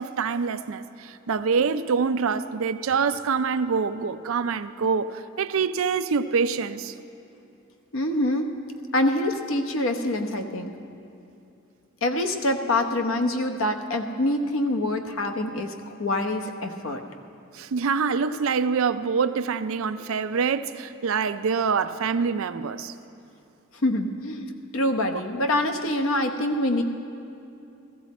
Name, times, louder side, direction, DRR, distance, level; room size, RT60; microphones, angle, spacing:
voice 1, 0.0-6.9 17.5-22.9, right 5 dB, 65° right, 0.4 m, -25 dB
voice 2, 7.9-8.5 8.9-10.7 12.0-17.0 23.8-26.8, left 1 dB, 65° left, 0.9 m, -25 dB
15.5 x 15.0 x 4.2 m
head